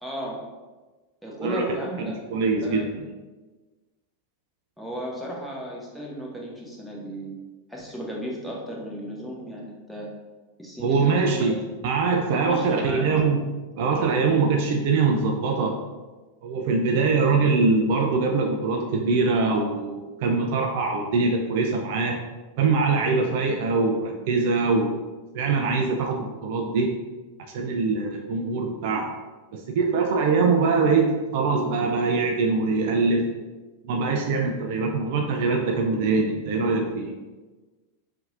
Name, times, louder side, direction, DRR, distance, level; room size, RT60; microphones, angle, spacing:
voice 1, 0.0-0.4 1.2-2.2 2.6-2.9 4.8-7.4 7.7-10.1 10.6-11.5 12.3-13.1, right 1 dB, ahead, -4 dB, 0.9 m, -35 dB
voice 2, 2.0-3.1 10.8-11.6 11.8-13.4 13.8-15.8 16.4-22.2 22.6-25.0 25.3-26.9 27.5-29.2 29.5-33.3 33.8-37.1, right 4 dB, 50° right, 2 dB, 0.4 m, -23 dB
5.6 x 2.7 x 2.5 m, 1.2 s
figure-of-eight pair, 90°, 0 cm